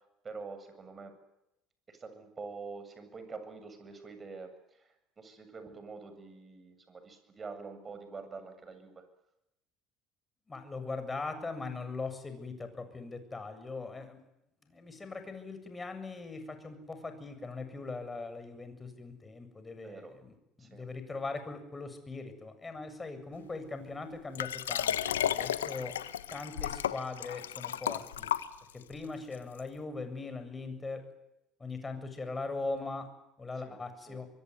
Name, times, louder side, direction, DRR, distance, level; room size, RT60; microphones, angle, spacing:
voice 1, 0.2-1.2 1.9-9.0 19.8-20.1 20.6-20.9 33.6-33.8 34.1-34.2, right 4 dB, 30° right, 9 dB, 7.7 m, -46 dB
voice 2, 10.5-14.2 14.6-25.9 26.3-28.3 28.7-31.1 31.6-33.1 33.4-34.3, left 3 dB, 20° left, 9 dB, 7.5 m, -40 dB
Liquid, 24.4-28.9 29.6-29.7, left 10 dB, 90° left, 1.2 m, -33 dB
25.0 x 23.5 x 9.7 m, 0.87 s
hypercardioid pair, 70°, 0 cm